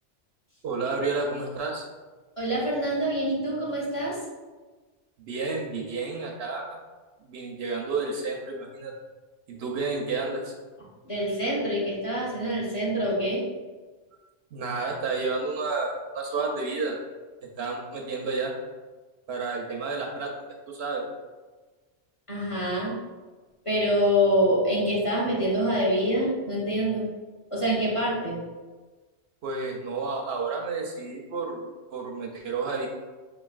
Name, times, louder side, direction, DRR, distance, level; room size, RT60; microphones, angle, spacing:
voice 1, 0.6-1.9 5.3-6.8 7.2-8.9 9.5-10.5 14.5-17.0 17.6-18.5 19.3-20.3 20.7-21.0 29.4-32.9, right 4 dB, 70° right, 1 dB, 0.8 m, -31 dB
voice 2, 2.4-4.2 11.0-13.4 22.3-22.9 23.6-27.1 27.5-28.4, equal, 30° left, -7 dB, 1.0 m, -25 dB
5.1 x 3.2 x 2.3 m, 1.3 s
omnidirectional pair, 1.2 m